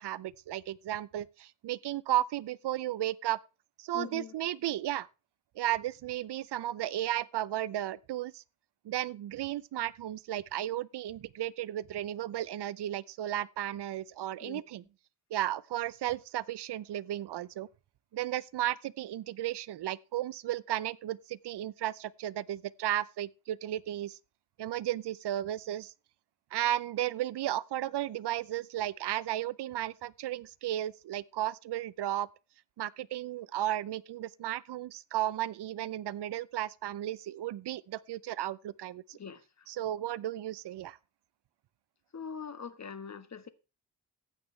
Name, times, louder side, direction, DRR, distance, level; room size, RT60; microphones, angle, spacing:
voice 1, 0.0-3.4 3.8-5.1 5.6-8.4 8.8-14.8 15.3-17.7 18.1-24.2 24.6-25.9 26.5-32.3 32.8-39.2 39.7-41.0, right 13 dB, 80° right, 0.6 m, -34 dB
voice 2, 3.9-4.3 14.4-14.6 39.1-39.7 42.1-43.5, left 6 dB, 40° left, 1.4 m, -42 dB
15.0 x 9.1 x 3.2 m
cardioid pair, 95°, 40 cm